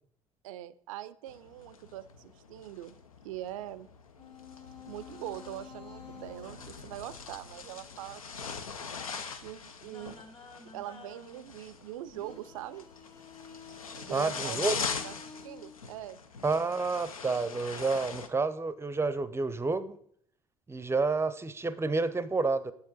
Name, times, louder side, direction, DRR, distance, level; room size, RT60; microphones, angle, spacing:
voice 1, 0.4-3.9 4.9-8.7 9.4-10.2 10.7-12.9 14.0-16.2, right 13 dB, 75° right, 16 dB, 0.4 m, -43 dB
sound 1, 1.3-18.3, left 5 dB, 90° left, 0.4 m, -42 dB
sound 2, 4.2-8.6 9.8-15.7, left 5 dB, 30° left, 2.1 m, -52 dB
voice 2, 14.1-14.8 16.4-20.0 20.7-22.7, right 3 dB, 15° right, 15 dB, 0.5 m, -29 dB
6.9 x 6.6 x 4.0 m, 0.65 s
figure-of-eight pair, 55°, 17 cm